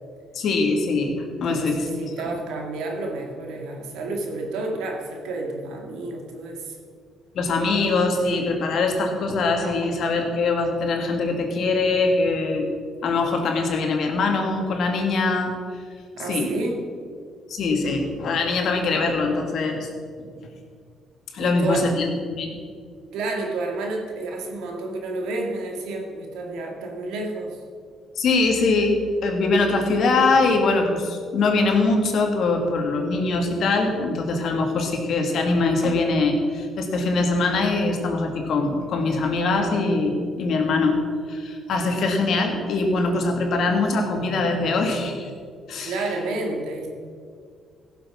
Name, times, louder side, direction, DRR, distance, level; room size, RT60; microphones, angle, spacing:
voice 1, 0.3-2.1 7.3-12.7 13.0-15.5 16.3-16.5 17.5-19.9 20.2-20.3 21.3-22.1 22.3-22.6 28.2-45.3 45.7-46.0, left 3 dB, 65° left, 3 dB, 2.2 m, -22 dB
voice 2, 1.5-6.8 16.1-16.8 21.4-21.9 23.1-27.6 45.8-46.9, right 2 dB, 90° right, 1 dB, 2.2 m, -30 dB
15.5 x 7.1 x 6.0 m, 2.1 s
cardioid pair, 90°, 0 cm